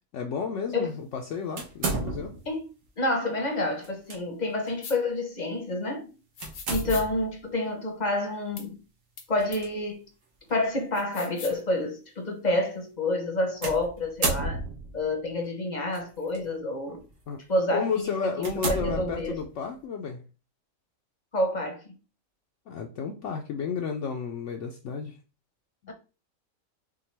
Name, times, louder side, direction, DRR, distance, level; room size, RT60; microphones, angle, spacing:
voice 1, 0.1-2.4 16.9-17.0 17.3-17.4 17.7-20.2 22.7-25.2, left 6 dB, 70° left, 0.8 m, -32 dB
sound 1, 1.6-2.5 3.8-4.2 4.6-4.8 6.4-7.3 9.4-9.7 10.5-10.6 13.6-15.0 15.9-16.4 16.9-17.1 17.7-17.8 18.4-19.6, right 3 dB, 65° right, 1.5 m, -32 dB
voice 2, 3.0-6.1 6.7-8.8 9.3-10.0 10.5-14.6 14.9-17.0 17.5-19.4 21.3-21.9 25.9-26.0, left 1 dB, 40° left, 0.8 m, -28 dB
sound 2, 4.8-5.0 6.4-7.1 8.6-8.7 9.2-9.3 9.5-9.6 10.9-11.6, left 6 dB, 90° left, 1.3 m, -40 dB
5.8 x 2.3 x 3.3 m
omnidirectional pair, 1.4 m